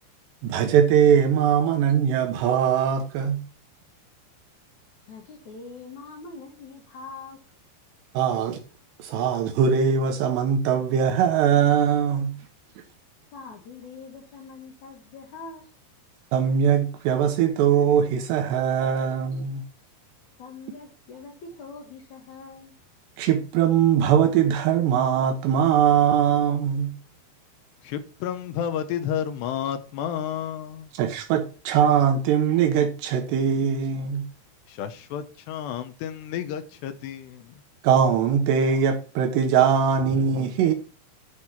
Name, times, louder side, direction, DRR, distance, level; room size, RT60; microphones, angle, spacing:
voice 1, 0.4-3.4 8.1-8.6 9.0-12.3 16.3-19.6 23.2-26.9 30.9-34.3 37.8-40.7, right 8 dB, 75° right, 2.9 m, -21 dB
voice 2, 5.1-7.4 13.3-15.7 20.4-22.7, left 4 dB, 55° left, 2.3 m, -43 dB
voice 3, 27.8-30.9 34.7-37.6 40.1-40.2, left 9 dB, 75° left, 2.9 m, -31 dB
11.0 x 4.9 x 5.9 m
omnidirectional pair, 5.2 m